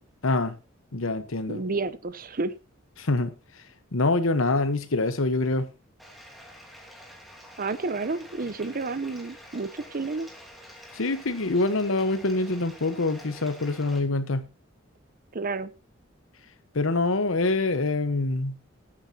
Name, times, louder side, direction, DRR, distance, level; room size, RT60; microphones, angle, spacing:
voice 1, 0.2-0.6 0.9-1.6 3.0-3.3 3.9-5.7 10.9-14.5 16.7-18.6, left 2 dB, 85° left, 1.1 m, -25 dB
voice 2, 1.5-2.5 7.6-10.3 15.3-15.7, right 3 dB, 45° right, 0.7 m, -30 dB
Bathtub (filling or washing), 6.0-14.0, equal, ahead, 2.9 m, -47 dB
19.5 x 8.9 x 2.8 m
head